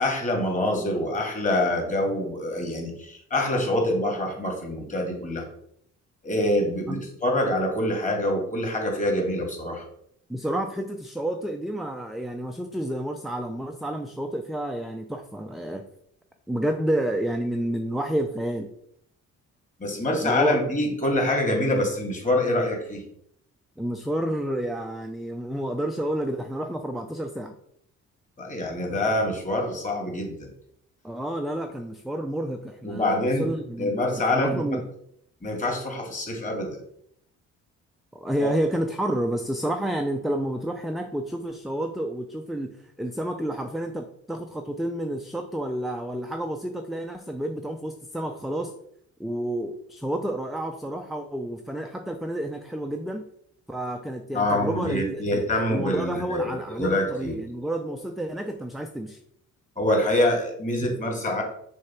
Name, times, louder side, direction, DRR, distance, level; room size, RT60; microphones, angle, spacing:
voice 1, 0.0-5.5 6.2-9.8 19.8-23.0 28.4-30.5 32.8-33.5 33.8-34.8 35.4-36.8 38.4-38.5 54.3-57.4 59.8-61.4, left 1 dB, 25° left, 1 dB, 2.6 m, -25 dB
voice 2, 10.3-15.9 16.5-18.7 20.2-20.6 23.8-27.5 31.0-33.9 34.3-34.8 38.1-48.7 49.2-53.2 53.7-59.2, right 1 dB, ahead, 4 dB, 0.6 m, -30 dB
6.4 x 3.6 x 5.8 m, 0.69 s
cardioid pair, 90°, 30 cm